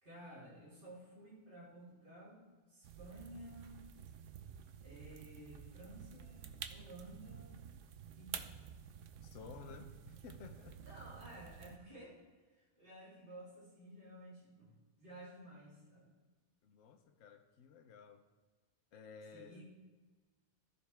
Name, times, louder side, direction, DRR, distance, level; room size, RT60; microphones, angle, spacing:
voice 1, 0.0-3.8 4.8-7.6 8.2-8.6 10.8-16.1 19.3-19.6, right 1 dB, 40° right, -8 dB, 3.8 m, -54 dB
sound 1, 2.8-11.8, right 8 dB, 70° right, 1.0 m, -51 dB
voice 2, 9.2-10.8 16.6-18.2 18.9-19.6, left 6 dB, 70° left, 5 dB, 1.1 m, -54 dB
14.5 x 7.1 x 3.4 m, 1.4 s
omnidirectional pair, 1.4 m